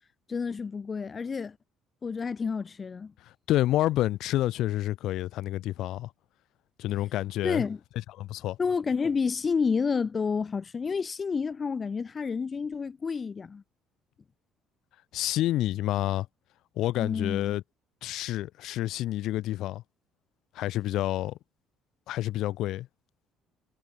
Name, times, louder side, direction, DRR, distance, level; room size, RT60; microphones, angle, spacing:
voice 1, 0.3-1.6 2.0-3.1 7.4-7.8 8.6-13.6 17.0-17.6, left 5 dB, 25° left, 2.0 m, -29 dB
voice 2, 3.5-6.1 6.8-7.6 8.2-8.6 15.1-16.3 16.8-17.6 18.0-19.8 20.5-21.4 22.1-22.9, left 14 dB, 65° left, 3.2 m, -28 dB
cardioid pair, 145°, 0 cm